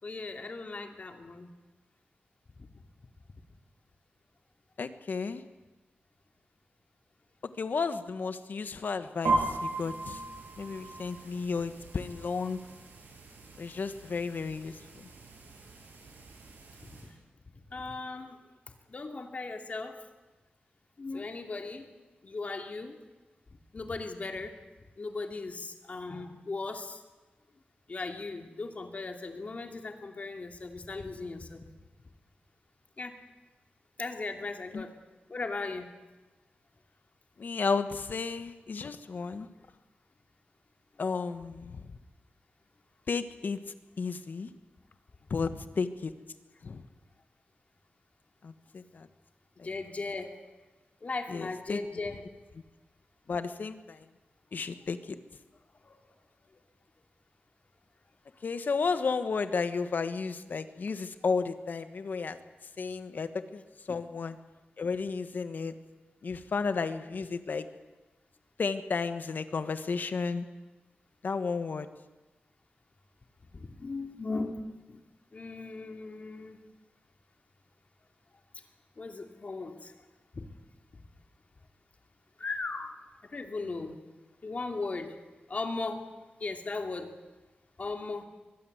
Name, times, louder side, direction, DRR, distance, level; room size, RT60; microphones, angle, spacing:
voice 1, 0.0-1.5 16.8-17.1 17.7-18.4 18.9-20.0 21.0-21.9 22.2-23.0 23.7-24.6 25.0-27.0 27.9-31.7 33.0-33.2 34.0-34.9 35.3-35.9 49.6-50.4 51.0-52.2 55.8-55.9 63.9-64.0 73.5-75.0 75.3-76.6 79.0-79.9 80.3-80.5 82.4-84.0 84.4-85.2 85.5-86.1 86.4-87.2 87.8-88.2, left 3 dB, 45° left, 5 dB, 2.6 m, -37 dB
voice 2, 4.8-5.4 7.6-10.2 10.6-12.6 13.6-14.8 34.7-34.8 37.4-39.5 41.0-41.9 43.1-43.6 44.0-44.5 45.3-45.5 45.8-46.1 46.6-46.8 48.4-49.1 49.6-49.7 51.3-51.8 53.3-54.0 54.5-55.2 58.4-62.4 62.8-63.6 63.9-64.4 64.8-65.7 66.2-67.7 68.6-70.5 71.2-71.9, left 4 dB, 60° left, 10 dB, 1.4 m, -33 dB
sound 1, 9.2-17.1, right 2 dB, 90° right, 7.0 m, -37 dB
23.5 x 20.0 x 8.1 m, 1.2 s
wide cardioid pair, 125°, 3 cm